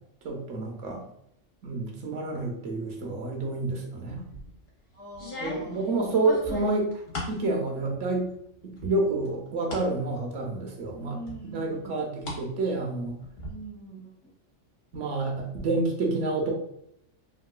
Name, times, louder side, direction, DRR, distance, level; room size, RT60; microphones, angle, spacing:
voice 1, 0.2-1.0 1.6-4.2 5.4-6.9 7.3-8.3 8.6-13.2 14.9-16.5, right 2 dB, 70° right, 0 dB, 0.9 m, -29 dB
sound 1, 4.1-4.5 5.1-7.4 7.8-8.4 8.8-9.9 10.3-10.4 11.3-12.4 12.7-13.5, left 2 dB, 85° left, 1.3 m, -38 dB
voice 2, 4.9-5.8 10.9-12.0 13.5-14.1, right 2 dB, 35° left, -5 dB, 0.8 m, -43 dB
3.7 x 2.2 x 2.2 m, 0.76 s
omnidirectional pair, 1.3 m